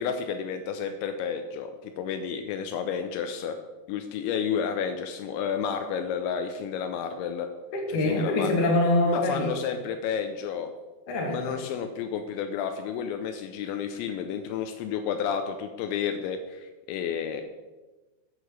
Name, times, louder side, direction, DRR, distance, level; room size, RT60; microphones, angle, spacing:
voice 1, 0.0-3.6 3.9-7.5 7.9-8.5 9.1-10.7 11.3-17.4, left 7 dB, 85° left, 6 dB, 2.9 m, -31 dB
voice 2, 7.7-9.5 11.1-11.5, left 2 dB, 55° left, 0 dB, 2.7 m, -24 dB
8.2 x 6.7 x 6.2 m, 1.2 s
omnidirectional pair, 5.3 m